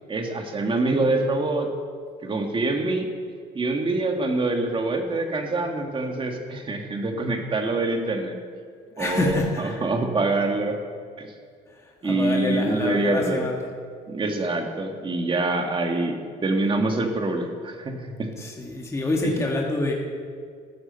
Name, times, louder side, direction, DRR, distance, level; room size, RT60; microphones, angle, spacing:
voice 1, 0.1-1.7 2.2-3.1 3.5-8.4 9.0-10.8 11.2-11.3 12.0-13.5 14.1-16.2 16.4-18.3 19.2-19.3, right 2 dB, 30° right, 3 dB, 2.0 m, -25 dB
voice 2, 9.0-9.9 12.0-13.6 18.4-19.9, left 2 dB, 15° left, -1 dB, 1.8 m, -26 dB
14.5 x 9.8 x 6.9 m, 2.1 s
cardioid pair, 110°, 17 cm